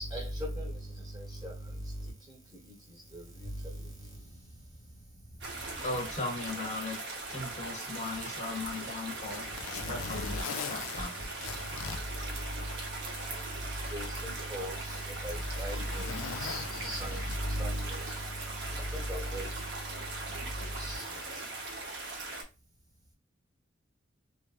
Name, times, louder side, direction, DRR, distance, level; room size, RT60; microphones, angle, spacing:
sound 1, 5.4-22.4, right 2 dB, 60° right, 0.8 m, -40 dB
voice 1, 5.8-7.0 7.3-11.1, left 2 dB, 40° left, 0.8 m, -38 dB
Zipper (clothing), 8.5-13.0 13.4-13.5 14.3-17.7 18.9-19.1, left 6 dB, 85° left, 0.4 m, -42 dB
voice 2, 13.9-14.8 15.2-16.1 16.4-18.0 19.1-19.5 20.8-21.0, equal, 20° right, 0.9 m, -35 dB
2.8 x 2.5 x 2.3 m
head